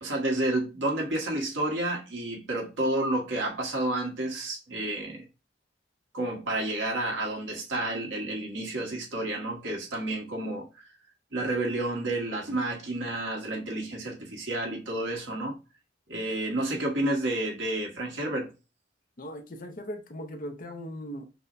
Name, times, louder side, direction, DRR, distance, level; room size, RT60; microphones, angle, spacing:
voice 1, 0.0-5.3 6.1-10.9 11.3-15.6 16.1-18.5, right 1 dB, 85° right, 1.5 m, -30 dB
voice 2, 19.2-21.3, equal, 45° left, 0.6 m, -39 dB
5.9 x 2.2 x 2.5 m
head